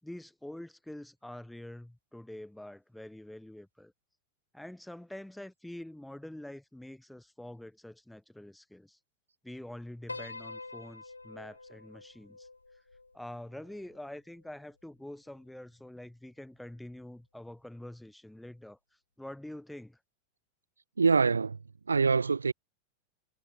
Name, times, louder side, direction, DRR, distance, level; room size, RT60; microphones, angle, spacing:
voice 1, 0.0-3.9 4.5-9.0 9.4-12.5 13.1-18.8 19.2-20.0, left 1 dB, 5° left, 4.5 m, -46 dB
Piano, 10.1-14.5, left 3 dB, 80° left, 1.9 m, -47 dB
voice 2, 21.0-21.6 21.9-22.5, right 5 dB, 75° right, 0.7 m, -24 dB
figure-of-eight pair, 90°, 0 cm